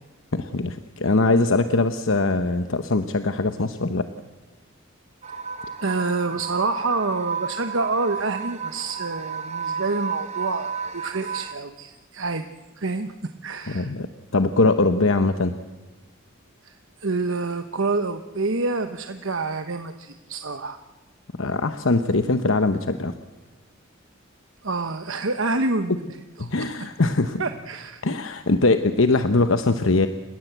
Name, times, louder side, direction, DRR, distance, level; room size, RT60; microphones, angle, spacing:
voice 1, 0.3-4.1 13.7-15.6 21.4-23.1 26.4-27.4 28.0-30.1, left 3 dB, 70° left, 9 dB, 1.0 m, -22 dB
sound 1, 5.2-11.5, right 6 dB, 30° right, 1.3 m, -32 dB
voice 2, 5.8-12.4 12.8-13.1 13.4-13.9 16.6-20.8 24.6-26.7 27.4-28.0, right 3 dB, 70° right, 7 dB, 1.1 m, -27 dB
29.0 x 16.0 x 8.1 m, 1.2 s
head